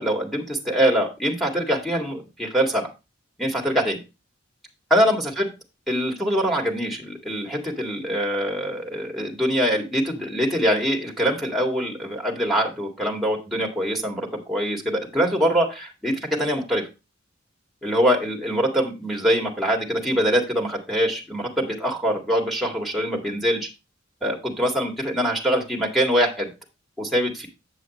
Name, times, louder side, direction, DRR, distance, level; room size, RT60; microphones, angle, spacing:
voice 1, 0.0-2.9 3.4-4.0 4.9-5.5 5.9-16.9 17.8-23.7 24.2-26.5 27.0-27.5, equal, ahead, 0 dB, 1.9 m, -23 dB
8.1 x 7.5 x 3.0 m, 0.27 s
head